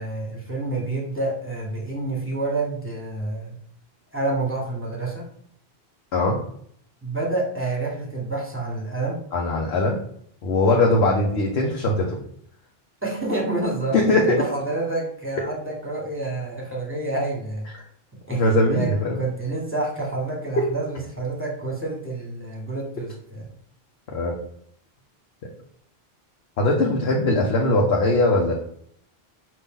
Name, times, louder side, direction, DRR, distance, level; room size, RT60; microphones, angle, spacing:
voice 1, 0.0-3.6 4.1-5.3 7.0-9.2 13.0-14.0 14.3-17.7 18.3-18.4 18.7-23.4, right 2 dB, 10° right, -2 dB, 1.2 m, -28 dB
voice 2, 9.3-10.0 10.4-12.2 13.9-14.4 18.3-19.2 24.1-24.3 26.6-28.5, left 2 dB, 75° left, -1 dB, 1.0 m, -20 dB
5.5 x 2.6 x 3.6 m, 0.65 s
omnidirectional pair, 1.1 m